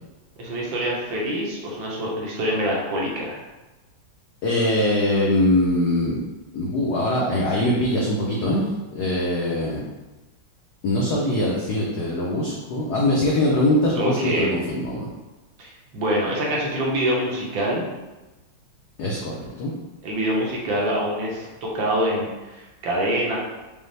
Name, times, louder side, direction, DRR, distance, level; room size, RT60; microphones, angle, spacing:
voice 1, 0.4-3.4 14.0-14.5 15.6-17.8 20.0-23.4, right 1 dB, 70° right, -3 dB, 1.5 m, -25 dB
voice 2, 4.4-6.2 6.5-9.8 10.8-15.1 19.0-19.7, left 1 dB, 85° left, -3 dB, 0.8 m, -22 dB
5.3 x 2.0 x 3.2 m, 1.1 s
omnidirectional pair, 2.4 m